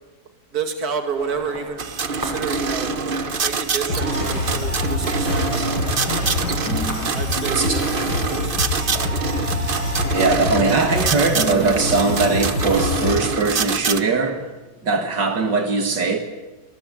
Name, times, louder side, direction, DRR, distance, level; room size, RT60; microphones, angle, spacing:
voice 1, 0.5-3.0 3.4-5.9 6.6-9.1, right 5 dB, 60° right, 2.7 m, -30 dB
sound 1, 1.1-13.0, equal, 10° right, 6.0 m, -36 dB
sound 2, 1.8-14.0, right 4 dB, 35° right, 1.0 m, -25 dB
sound 3, 3.9-13.1, left 1 dB, 65° left, 7.4 m, -25 dB
voice 2, 7.5-7.9 10.1-16.2, right 4 dB, 80° right, 2.9 m, -21 dB
27.0 x 20.0 x 8.8 m
omnidirectional pair, 1.9 m